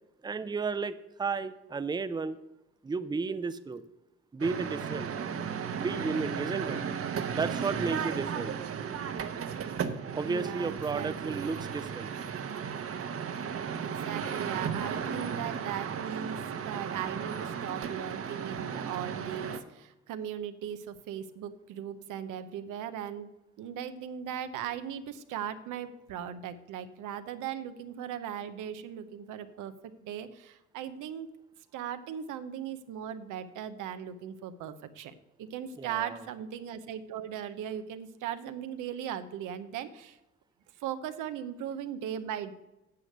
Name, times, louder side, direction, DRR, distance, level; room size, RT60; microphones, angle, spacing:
voice 1, 0.2-2.4 2.8-3.8 4.3-5.1 5.8-6.8 7.3-8.5 10.1-12.1 35.8-36.2, right 4 dB, 15° right, 13 dB, 0.5 m, -33 dB
sound 1, 4.4-19.6, right 7 dB, 50° right, 0.9 m, -35 dB
voice 2, 10.2-11.5 13.7-23.3 23.6-29.7 30.0-31.3 31.7-35.1 35.4-40.1 40.8-42.5, right 9 dB, 90° right, 10 dB, 0.8 m, -38 dB
9.6 x 6.5 x 6.6 m, 0.98 s
cardioid pair, 90°, 30 cm